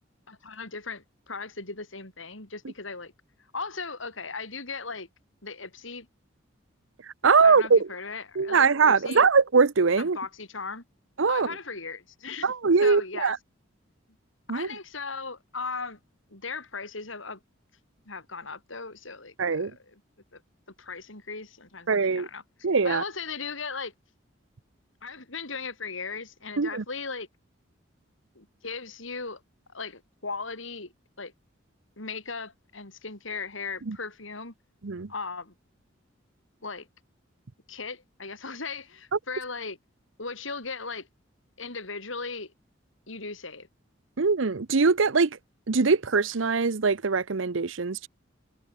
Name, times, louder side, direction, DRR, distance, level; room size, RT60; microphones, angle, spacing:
voice 1, 0.3-3.1 3.5-5.1 5.4-6.1 7.4-9.3 10.0-10.8 11.3-12.5 12.8-13.3 14.5-16.0 16.3-17.4 18.0-20.0 20.3-20.4 20.8-22.4 22.8-23.9 25.0-27.3 28.3-29.4 29.7-30.9 31.2-31.3 32.0-34.5 35.1-35.5 36.6-36.9 37.7-39.8 40.2-41.1 41.6-42.5 43.1-43.7, left 4 dB, 80° left, 4.8 m, -37 dB
voice 2, 7.2-7.9 8.4-10.2 11.2-11.5 12.4-13.4 14.5-14.7 19.4-19.7 21.9-22.3 22.6-23.0 26.6-26.8 33.9-34.0 34.8-35.1 44.2-45.3 45.7-48.1, right 4 dB, 75° right, 0.8 m, -22 dB
head